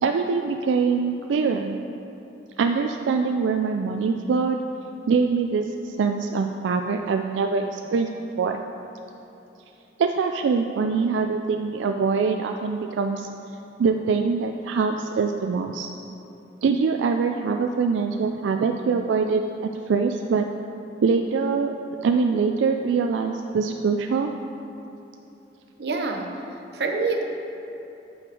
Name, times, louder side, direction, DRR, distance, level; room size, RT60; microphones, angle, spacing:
voice 1, 0.0-1.8 2.6-4.6 5.1-8.1 8.4-8.6 10.0-13.3 13.8-15.9 16.6-20.5 21.0-21.7 22.0-24.3, right 5 dB, 90° right, 5 dB, 0.3 m, -23 dB
voice 2, 25.8-26.3 26.7-27.2, right 3 dB, 60° right, 2 dB, 0.8 m, -25 dB
8.1 x 5.8 x 4.6 m, 2.9 s
head